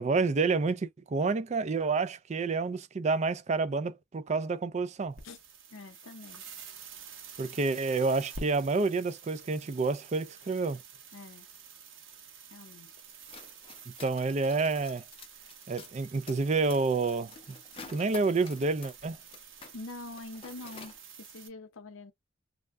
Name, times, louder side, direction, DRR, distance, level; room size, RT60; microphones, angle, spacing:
voice 1, 0.0-5.2 7.4-10.8 14.0-15.0 15.7-17.3 17.9-19.2, right 4 dB, 35° right, 0.3 m, -29 dB
sound 1, 5.1-21.5, right 5 dB, 65° right, 0.9 m, -49 dB
voice 2, 5.7-6.4 11.1-11.5 12.5-12.9 19.7-22.1, left 2 dB, 75° left, 0.6 m, -45 dB
sound 2, 13.1-19.8 20.0-21.0, left 4 dB, 25° left, 0.6 m, -50 dB
2.3 x 2.2 x 3.5 m
head